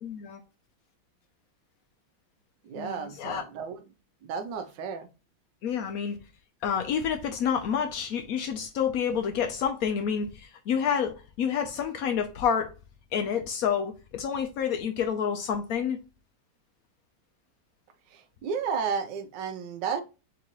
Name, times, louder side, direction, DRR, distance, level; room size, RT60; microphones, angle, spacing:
voice 1, 0.0-0.4 2.8-3.4 5.6-6.2 6.6-12.7 13.1-16.0, left 7 dB, 90° left, 0.7 m, -29 dB
voice 2, 2.6-3.7 4.2-5.1 18.1-20.0, right 6 dB, 70° right, 1.2 m, -32 dB
3.9 x 3.6 x 2.9 m
omnidirectional pair, 2.1 m